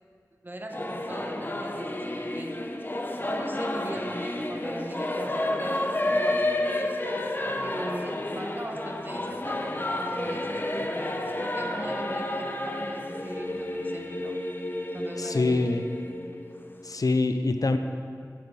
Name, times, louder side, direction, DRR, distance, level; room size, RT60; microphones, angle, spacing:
voice 1, 0.4-2.7 3.3-7.1 7.6-10.9 11.4-14.4 14.9-15.8, right 1 dB, 30° right, 4 dB, 1.0 m, -40 dB
Singing / Musical instrument, 0.7-17.0, left 1 dB, 30° left, 0.9 m, -31 dB
voice 2, 15.2-15.8 16.8-17.8, left 3 dB, 65° left, 7 dB, 0.6 m, -24 dB
10.5 x 9.7 x 4.8 m, 2.1 s
wide cardioid pair, 45°, 7 cm